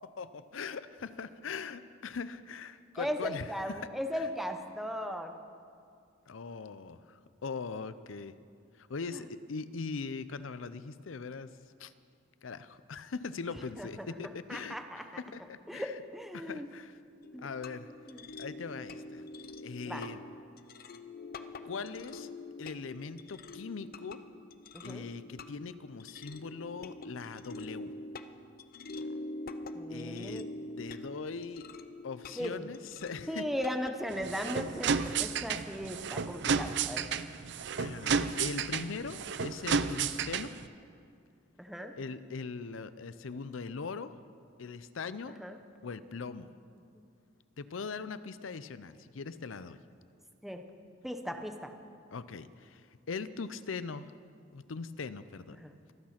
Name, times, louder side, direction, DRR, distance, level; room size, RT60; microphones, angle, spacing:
voice 1, 0.0-4.2 6.3-8.4 8.7-11.5 11.8-11.9 12.4-16.0 16.3-17.0 17.4-17.9 18.4-19.2 19.6-20.2 21.6-22.3 22.6-24.2 24.8-27.9 29.9-30.4 30.8-31.7 32.0-33.5 37.7-40.5 41.9-44.1 44.6-45.4 45.8-46.5 47.6-49.8 52.1-54.1 54.5-55.6, left 4 dB, 90° left, 14 dB, 0.6 m, -41 dB
voice 2, 3.0-5.3 13.8-14.1 14.5-15.2 15.7-16.7 17.3-17.5 18.1-18.2 19.9-20.1 24.7-25.1 29.7-30.5 32.4-32.7 33.3-37.0 41.6-41.9 45.4-45.6 46.9-47.0 50.4-50.6 51.0-51.7 55.6-55.7, equal, ahead, 5 dB, 0.9 m, -37 dB
sound 1, 17.2-33.9, left 2 dB, 50° left, 0.6 m, -45 dB
sound 2, 34.1-40.7, right 6 dB, 65° right, 0.6 m, -32 dB
25.0 x 8.8 x 5.9 m, 2.3 s
head